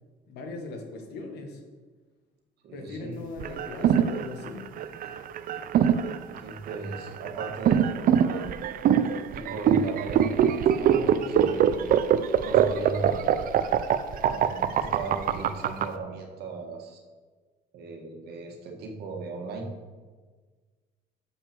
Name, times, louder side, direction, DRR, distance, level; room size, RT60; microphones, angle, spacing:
voice 1, 0.3-1.6 2.7-4.7, left 3 dB, 75° left, 4 dB, 1.7 m, -39 dB
voice 2, 2.6-3.2 5.0-5.1 6.4-8.5 8.9-11.8 12.4-13.2 14.2-17.0 17.7-19.7, right 3 dB, 75° right, 2 dB, 1.7 m, -37 dB
sound 1, 3.4-15.8, right 9 dB, 55° right, 0.6 m, -23 dB
6.6 x 5.9 x 6.9 m, 1.4 s
cardioid pair, 110°, 17 cm